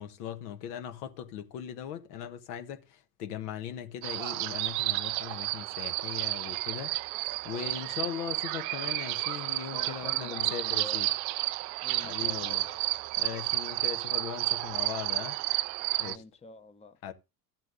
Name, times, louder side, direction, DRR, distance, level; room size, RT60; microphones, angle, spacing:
voice 1, 0.0-7.0 7.2-11.1 12.0-12.6 13.2-15.4 16.0-16.2 17.0-17.1, left 9 dB, 70° left, 1.2 m, -39 dB
sound 1, 4.0-16.2, right 20 dB, 65° right, 0.5 m, -31 dB
voice 2, 9.7-11.1 11.8-12.9 16.0-17.0, left 3 dB, 15° left, 0.7 m, -47 dB
13.5 x 7.4 x 2.6 m
hypercardioid pair, 75°, 47 cm